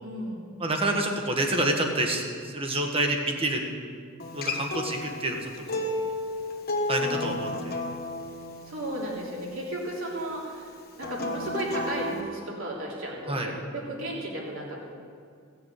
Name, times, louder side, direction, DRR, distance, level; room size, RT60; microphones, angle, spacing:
voice 1, 0.0-0.4 8.7-10.7 11.0-14.8, right 1 dB, 65° right, -3 dB, 3.3 m, -34 dB
voice 2, 0.6-3.6 4.3-6.1 6.9-7.9 13.3-13.5, right 1 dB, 25° right, 2 dB, 1.5 m, -28 dB
Acoustic guitar, 4.2-9.4 11.0-12.2, left 2 dB, 45° left, 1.4 m, -32 dB
16.5 x 7.0 x 8.1 m, 2.2 s
head